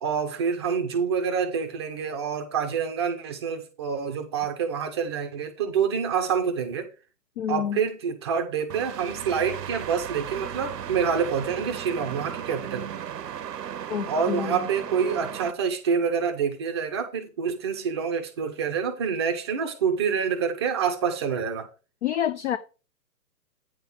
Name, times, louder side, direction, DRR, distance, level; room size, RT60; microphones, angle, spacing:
voice 1, 0.0-6.9 7.5-12.9 14.1-21.7, right 6 dB, 15° right, 0.6 m, -27 dB
voice 2, 7.4-7.8 13.9-14.6 22.0-22.6, left 9 dB, 45° left, 0.6 m, -28 dB
sound 1, 8.7-15.5, right 9 dB, 85° right, 0.8 m, -36 dB
9.2 x 3.6 x 5.9 m
hypercardioid pair, 150°, 48 cm